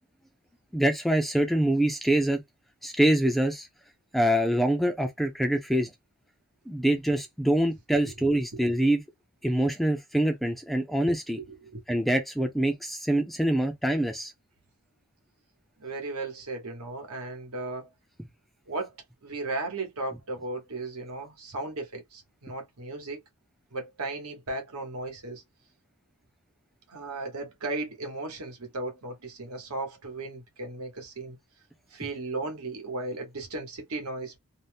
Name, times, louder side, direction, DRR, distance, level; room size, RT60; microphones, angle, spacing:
voice 1, 0.7-2.4 2.8-3.7 4.1-5.9 6.7-9.0 9.4-11.4 11.9-14.3, right 1 dB, ahead, 0.3 m, -25 dB
voice 2, 11.3-11.8 15.8-17.9 18.7-18.9 19.2-23.2 23.7-25.4 26.9-31.4 31.9-34.4, right 2 dB, 85° right, 1.0 m, -36 dB
2.7 x 2.0 x 3.3 m
head